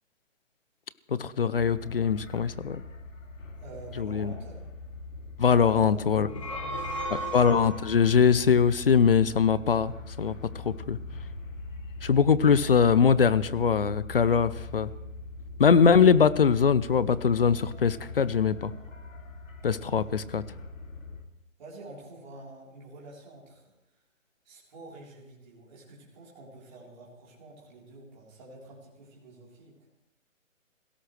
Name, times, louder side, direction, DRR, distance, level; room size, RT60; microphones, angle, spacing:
voice 1, 1.1-2.8 4.0-4.3 5.4-6.3 7.1-10.4 10.6-11.0 12.0-14.9 15.6-18.7 19.6-20.4, left 6 dB, 45° left, 17 dB, 0.6 m, -22 dB
sound 1, 1.6-21.2, left 2 dB, 70° left, 2.8 m, -42 dB
voice 2, 3.6-4.6 5.6-6.0 6.3-7.3 14.2-14.4 19.9-20.1 21.6-24.0 24.4-29.8, right 2 dB, 35° right, -5 dB, 4.0 m, -47 dB
sound 2, 6.2-8.1, right 1 dB, 25° left, 1.0 m, -35 dB
25.0 x 17.0 x 3.3 m, 0.89 s
hypercardioid pair, 170°, 40 cm